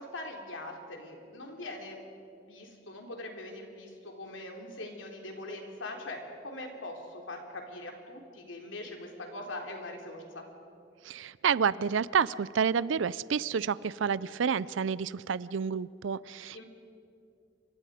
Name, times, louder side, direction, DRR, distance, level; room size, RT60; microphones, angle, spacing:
voice 1, 0.0-2.0 2.5-10.5 16.5-16.6, left 2 dB, 85° left, 2 dB, 3.4 m, -42 dB
voice 2, 11.0-16.6, right 6 dB, 85° right, 19 dB, 0.5 m, -29 dB
28.5 x 24.5 x 5.0 m, 2.5 s
head